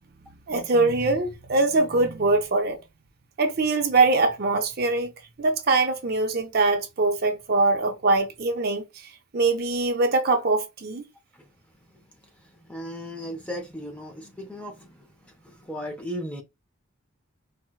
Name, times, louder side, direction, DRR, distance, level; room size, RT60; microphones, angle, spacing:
voice 1, 0.5-2.8 3.4-5.1 5.4-8.8 9.3-11.0, right 3 dB, 50° right, 0.6 m, -22 dB
voice 2, 11.9-16.4, equal, 5° left, 0.5 m, -37 dB
4.3 x 2.2 x 2.2 m
head